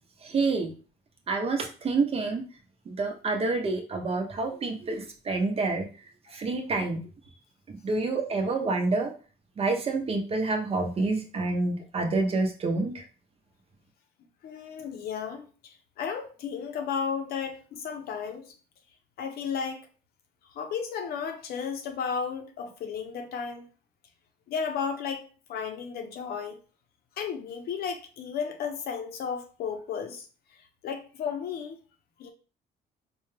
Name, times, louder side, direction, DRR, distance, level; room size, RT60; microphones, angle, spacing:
voice 1, 0.2-0.7 1.3-2.4 2.9-5.8 6.3-7.0 7.8-9.1 9.6-13.0, right 3 dB, 35° right, 0.8 m, -28 dB
voice 2, 14.4-18.5 19.2-19.8 20.5-23.6 24.5-25.2 25.5-26.6 27.2-30.3 30.8-31.8 32.2-32.3, left 6 dB, 70° left, 0.8 m, -33 dB
4.3 x 2.3 x 3.2 m
cardioid pair, 110°, 17 cm